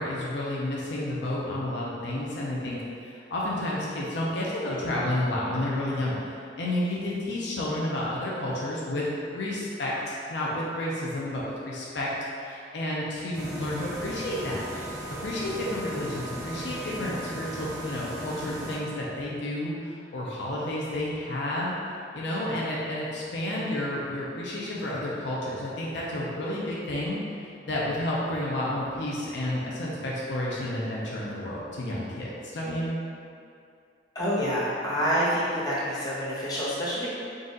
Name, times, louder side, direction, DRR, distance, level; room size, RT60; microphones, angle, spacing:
voice 1, 0.0-12.1 12.4-14.6 15.2-32.9, left 1 dB, 70° left, -5 dB, 0.6 m, -31 dB
sound 1, 13.3-18.8, right 1 dB, 15° right, 1.1 m, -37 dB
voice 2, 34.1-37.1, equal, 20° left, -9 dB, 0.9 m, -27 dB
4.0 x 2.5 x 3.8 m, 2.5 s
head